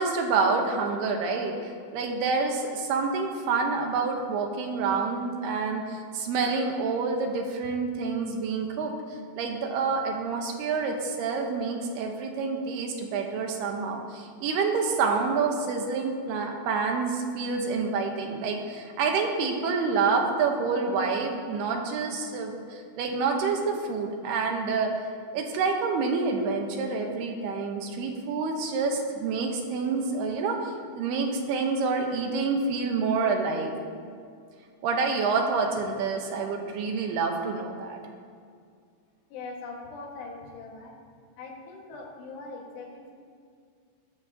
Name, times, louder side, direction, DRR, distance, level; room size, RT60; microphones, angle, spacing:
voice 1, 0.0-1.5 1.9-8.9 9.4-24.9 25.3-33.7 34.8-38.0, right 4 dB, 75° right, 2 dB, 3.0 m, -28 dB
voice 2, 39.3-40.9 41.4-43.1, left 3 dB, 80° left, -2 dB, 3.9 m, -41 dB
21.0 x 10.0 x 2.9 m, 2.2 s
omnidirectional pair, 4.8 m